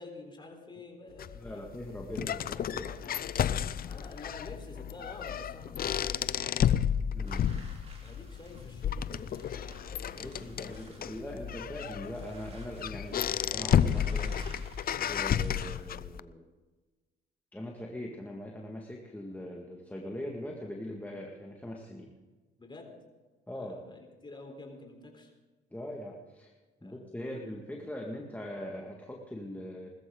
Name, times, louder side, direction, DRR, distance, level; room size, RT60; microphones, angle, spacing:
voice 1, 0.0-1.6 3.8-6.3 8.0-11.5 22.6-22.9 23.6-25.3 26.8-27.0, left 3 dB, 25° left, 2 dB, 4.0 m, -49 dB
sound 1, 1.2-16.2, left 9 dB, 50° left, 0.5 m, -32 dB
voice 2, 1.3-3.2 7.1-7.5 10.2-14.4 15.0-16.5 17.5-22.1 23.5-23.8 25.7-26.5 26.8-29.9, left 1 dB, 10° left, -1 dB, 1.9 m, -41 dB
sound 2, 7.2-15.8, right 2 dB, 30° right, 4.1 m, -54 dB
20.0 x 14.0 x 3.9 m, 1.3 s
cardioid pair, 90°, 20 cm